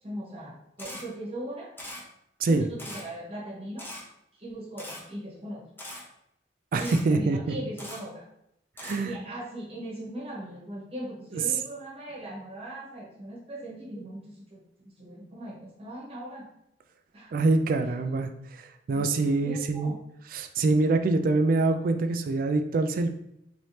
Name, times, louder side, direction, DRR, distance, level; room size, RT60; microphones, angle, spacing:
voice 1, 0.0-1.7 2.5-3.9 4.3-5.7 6.7-8.3 9.0-16.5 17.1-17.3 18.9-20.0, right 1 dB, 35° right, -4 dB, 1.0 m, -39 dB
Camera, 0.8-1.0 1.8-2.0 2.8-3.0 3.8-4.0 4.8-5.0 5.8-6.0 6.8-7.0 7.8-8.0 8.8-9.0, left 1 dB, 10° left, 0.7 m, -40 dB
voice 2, 6.7-7.4 8.8-9.1 17.3-18.3 18.9-19.9 20.3-23.1, right 3 dB, 50° right, 7 dB, 0.3 m, -24 dB
3.1 x 2.7 x 3.2 m, 0.80 s
head